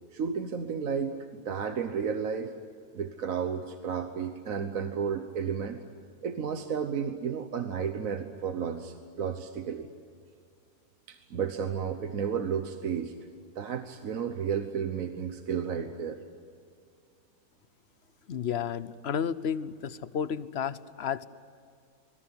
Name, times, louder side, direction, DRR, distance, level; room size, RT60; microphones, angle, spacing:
voice 1, 0.1-2.5 2.9-5.8 6.2-9.9 11.1-13.1 13.5-16.2, right 7 dB, 65° right, 7 dB, 1.5 m, -32 dB
voice 2, 18.3-21.3, left 7 dB, 50° left, 16 dB, 0.9 m, -32 dB
24.5 x 22.0 x 9.7 m, 2.2 s
omnidirectional pair, 1.6 m